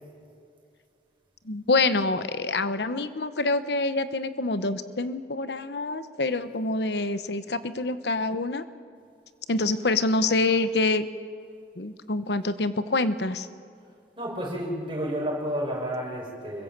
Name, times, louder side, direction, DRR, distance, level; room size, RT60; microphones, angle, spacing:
voice 1, 1.4-8.6 9.5-11.1 11.8-13.5, left 2 dB, 70° left, 12 dB, 1.0 m, -26 dB
voice 2, 14.2-16.6, equal, 30° right, -2 dB, 5.9 m, -31 dB
26.0 x 23.0 x 7.4 m, 2.3 s
head